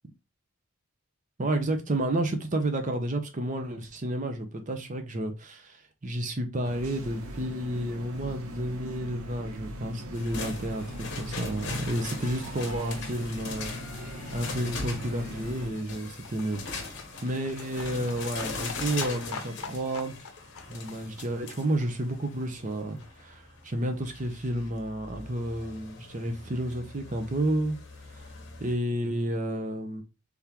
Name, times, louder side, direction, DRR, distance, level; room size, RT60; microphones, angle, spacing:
voice 1, 1.4-20.1 20.7-27.8 28.1-28.3 28.6-30.0, right 1 dB, 35° right, 0.6 m, -31 dB
sound 1, 6.6-15.7, equal, 75° right, 0.8 m, -40 dB
sound 2, 10.1-28.7, left 3 dB, 50° left, 1.0 m, -41 dB
Livestock farm animals working animals, 15.0-22.8 23.0-23.1 23.3-23.4 23.6-23.7 23.9-24.0 24.2-24.3 24.6-24.7 24.9-25.0 25.2-25.3, left 5 dB, 75° left, 0.6 m, -45 dB
3.5 x 3.5 x 2.9 m
head